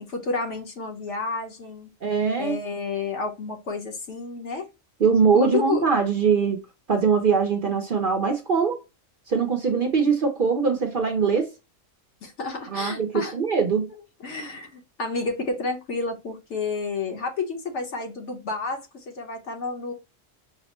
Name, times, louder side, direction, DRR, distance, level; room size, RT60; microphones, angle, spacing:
voice 1, 0.0-1.9 2.4-4.7 5.3-5.8 12.2-13.3 14.2-19.9, left 4 dB, 65° left, 1.3 m, -30 dB
voice 2, 2.0-2.6 5.0-6.6 6.9-8.8 9.3-11.5 12.7-13.9, right 5 dB, 50° right, 0.7 m, -22 dB
5.7 x 2.0 x 2.9 m
omnidirectional pair, 1.4 m